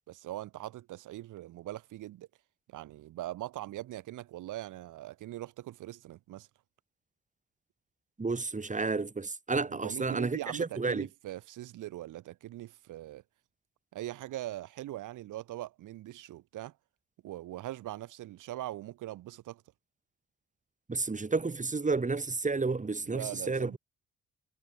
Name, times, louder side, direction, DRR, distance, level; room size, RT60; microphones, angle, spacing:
voice 1, 0.1-2.3 2.7-6.5 9.7-13.2 13.9-16.7 17.2-19.6 23.1-23.8, right 15 dB, 85° right, 4.5 m, -41 dB
voice 2, 8.2-11.1 20.9-23.8, right 3 dB, 25° right, 5.5 m, -31 dB
cardioid pair, 90°, 30 cm